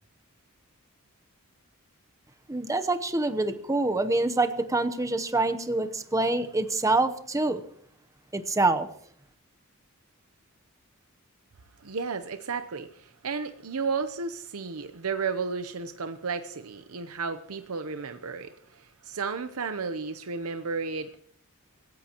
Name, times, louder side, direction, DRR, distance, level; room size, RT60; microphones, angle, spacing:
voice 1, 2.5-7.6 8.3-8.9, right 2 dB, 15° right, 9 dB, 0.9 m, -26 dB
voice 2, 11.8-21.2, right 5 dB, 80° right, 9 dB, 0.8 m, -33 dB
26.5 x 15.5 x 3.0 m, 0.62 s
head